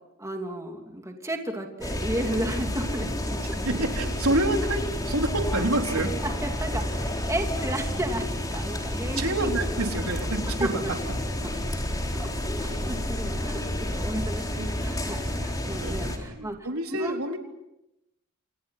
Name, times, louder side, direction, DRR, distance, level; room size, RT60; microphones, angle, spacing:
voice 1, 0.2-3.6 6.4-9.5 10.6-10.7 12.1-12.3 12.6-16.6 16.9-17.2, right 1 dB, 15° right, 3 dB, 2.9 m, -33 dB
sound 1, 1.8-16.2, left 1 dB, 20° left, 4.5 m, -30 dB
voice 2, 3.6-6.1 9.1-11.0 14.5-14.7 15.8-17.4, right 1 dB, 85° right, 3 dB, 4.0 m, -28 dB
29.5 x 28.0 x 5.9 m, 0.89 s
head